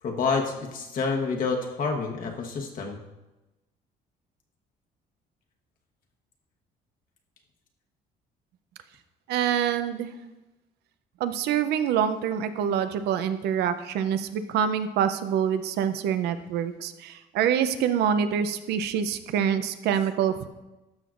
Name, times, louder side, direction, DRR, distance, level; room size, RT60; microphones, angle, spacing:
voice 1, 0.0-3.0, left 4 dB, 55° left, 1 dB, 1.1 m, -28 dB
voice 2, 9.3-10.1 11.2-20.5, right 8 dB, 75° right, 11 dB, 0.6 m, -26 dB
12.0 x 6.0 x 2.5 m, 1.0 s
cardioid pair, 110°, 17 cm